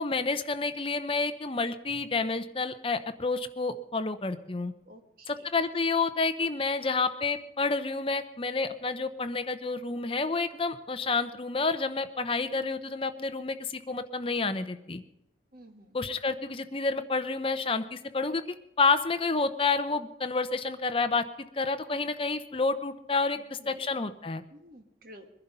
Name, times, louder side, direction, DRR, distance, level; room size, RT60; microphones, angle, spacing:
voice 1, 0.0-4.7 5.3-15.0 15.9-18.4 18.8-21.3 21.5-24.4, left 4 dB, 30° left, 9 dB, 0.7 m, -29 dB
voice 2, 4.8-5.5 15.5-16.0 21.9-22.0 23.6-23.8 24.5-25.3, equal, 50° right, 5 dB, 1.6 m, -52 dB
22.0 x 11.0 x 5.5 m, 0.87 s
head